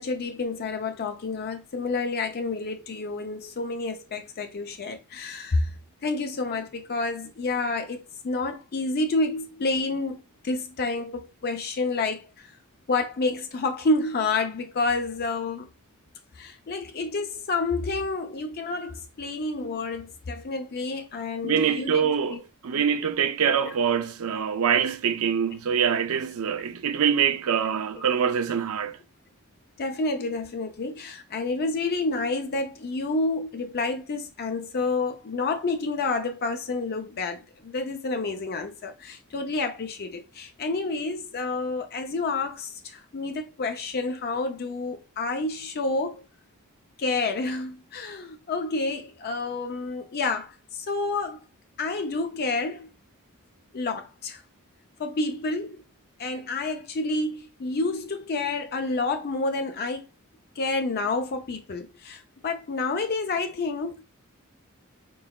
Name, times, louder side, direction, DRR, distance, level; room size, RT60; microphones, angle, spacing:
voice 1, 0.0-5.7 6.0-12.5 12.9-15.7 16.3-22.4 22.7-22.9 23.7-23.8 27.9-28.0 29.8-46.2 47.0-51.4 51.8-52.9 53.7-54.4 55.0-55.8 56.2-60.1 60.6-64.0, left 3 dB, 45° left, 0.5 m, -29 dB
voice 2, 21.4-29.0, right 7 dB, 70° right, 0.5 m, -24 dB
3.8 x 3.8 x 2.3 m
head